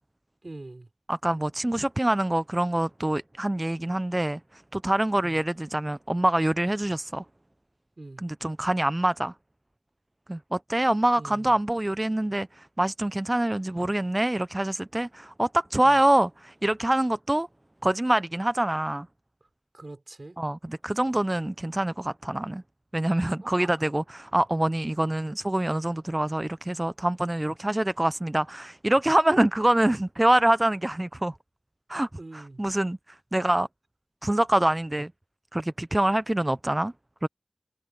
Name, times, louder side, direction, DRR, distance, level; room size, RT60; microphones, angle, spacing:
voice 1, 0.4-0.9 5.2-5.4 8.0-8.2 11.2-11.5 15.8-15.9 19.7-20.4 23.6-23.7 32.2-32.6, right 2 dB, 65° right, 4.6 m, -42 dB
voice 2, 1.1-7.2 8.2-9.3 10.3-17.5 17.8-19.1 20.4-22.6 22.9-31.3 31.9-33.7 34.2-35.1 35.5-36.9 37.2-37.3, right 1 dB, 35° right, 0.4 m, -25 dB
wide cardioid pair, 45°, 0 cm